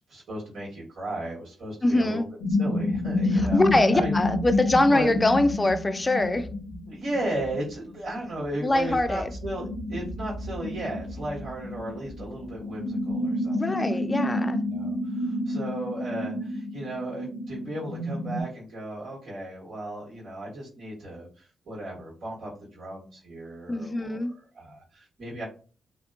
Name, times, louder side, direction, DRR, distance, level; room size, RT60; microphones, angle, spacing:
voice 1, 0.1-2.2 2.6-3.6 3.9-4.1 4.9-5.1 6.9-14.3 14.7-25.4, right 1 dB, 65° right, 1.3 m, -35 dB
voice 2, 1.8-2.3 3.3-6.5 8.6-9.3 13.5-14.6 23.7-24.3, left 2 dB, 25° left, 0.4 m, -23 dB
sound 1, 2.4-7.9 8.1-18.4, left 1 dB, 90° left, 0.5 m, -30 dB
2.8 x 2.1 x 2.3 m
supercardioid pair, 50°, 0 cm